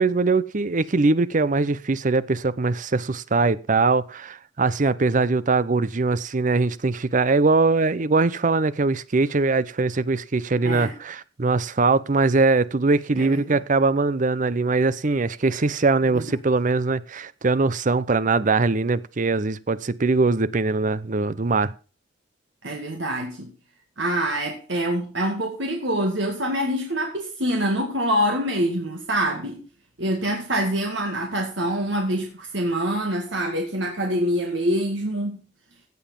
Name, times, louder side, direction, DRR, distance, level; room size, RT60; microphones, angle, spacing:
voice 1, 0.0-21.7, right 3 dB, 45° right, 0.6 m, -22 dB
voice 2, 13.2-13.6 16.1-16.3 22.6-23.5 24.0-29.6 30.0-35.4, equal, 75° right, 2.1 m, -25 dB
16.0 x 7.0 x 5.4 m
head